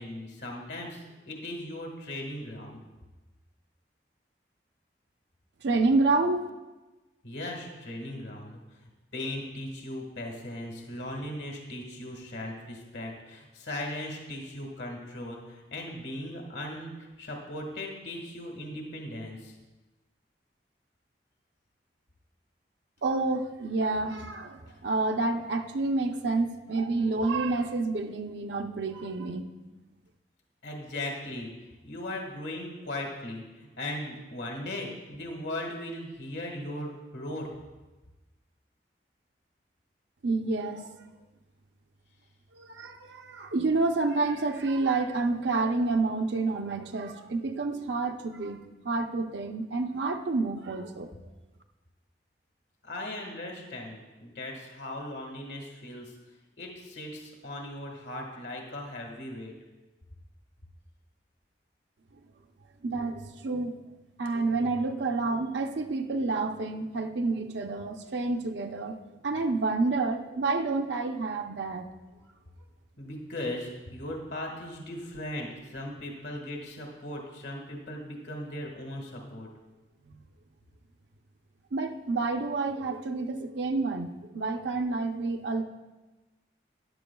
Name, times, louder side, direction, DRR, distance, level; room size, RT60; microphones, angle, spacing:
voice 1, 0.0-2.8 7.2-8.6 9.1-19.5 24.7-24.8 30.6-31.5 31.8-37.5 52.8-56.1 56.6-59.5 73.0-79.5, left 1 dB, 75° left, 1 dB, 1.7 m, -38 dB
voice 2, 5.6-6.5 23.0-29.5 40.2-41.0 42.5-51.1 62.8-63.8 64.2-69.0 69.2-71.9 80.1-80.2 81.7-85.6, right 3 dB, 80° right, 4 dB, 0.6 m, -29 dB
14.0 x 10.0 x 2.3 m, 1.1 s
head